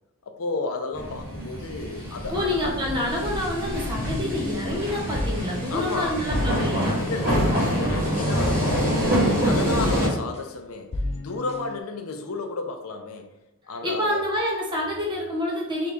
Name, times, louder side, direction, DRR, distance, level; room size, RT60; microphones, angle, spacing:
voice 1, 0.3-2.7 5.7-6.2 6.8-9.2 9.4-13.3 13.6-14.2, left 3 dB, 85° left, 6 dB, 0.5 m, -32 dB
sound 1, 0.9-10.1, equal, 45° right, 1.2 m, -26 dB
voice 2, 2.3-7.0 13.8-15.9, left 1 dB, 20° right, -3 dB, 1.0 m, -27 dB
sound 2, 2.8-10.6 10.9-11.8, left 2 dB, 30° left, 0.3 m, -34 dB
3.6 x 2.8 x 3.4 m, 0.94 s
head